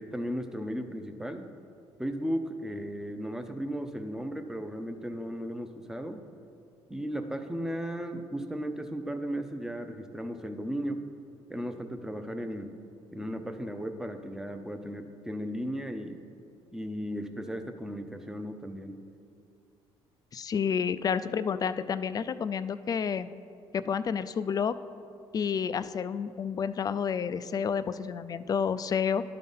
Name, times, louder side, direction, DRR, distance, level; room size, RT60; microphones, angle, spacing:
voice 1, 0.0-1.4 2.0-6.2 6.9-11.0 11.5-12.7 13.1-16.2 16.7-19.0, equal, 5° right, 7 dB, 0.6 m, -35 dB
voice 2, 20.3-23.3 23.7-24.8 25.3-29.2, left 7 dB, 35° left, 14 dB, 0.3 m, -30 dB
11.5 x 3.9 x 5.4 m, 2.5 s
supercardioid pair, 85°, 11 cm